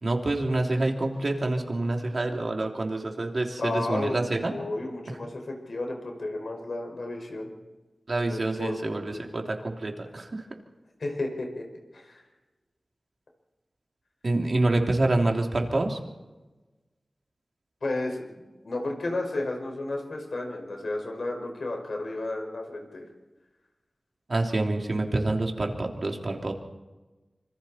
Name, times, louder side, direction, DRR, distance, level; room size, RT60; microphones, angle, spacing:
voice 1, 0.0-4.5 8.1-10.4 14.2-16.0 24.3-26.5, right 2 dB, 55° right, 1 dB, 3.1 m, -27 dB
voice 2, 3.6-7.5 8.3-9.2 11.0-11.6 11.9-12.2 17.8-23.0, left 2 dB, 75° left, 2 dB, 5.6 m, -33 dB
26.5 x 25.0 x 4.4 m, 1.2 s
wide cardioid pair, 75°, 0 cm